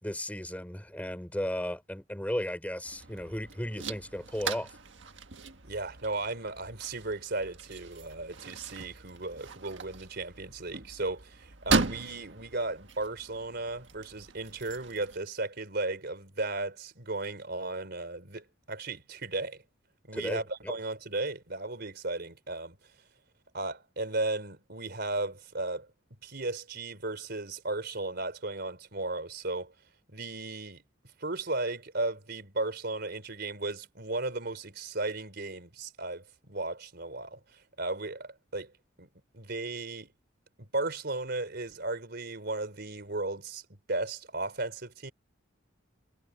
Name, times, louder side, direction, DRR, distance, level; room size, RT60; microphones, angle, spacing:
voice 1, 0.0-4.7 20.1-20.7, equal, 10° left, 4.3 m, -35 dB
sound 1, 2.8-15.2, right 4 dB, 75° right, 1.7 m, -37 dB
voice 2, 5.7-19.6 20.1-22.8 23.5-25.9 26.2-29.7 30.1-30.8 31.2-38.7 39.0-39.1 39.3-40.1 40.6-43.6 43.9-45.1, right 2 dB, 60° right, 4.0 m, -35 dB
head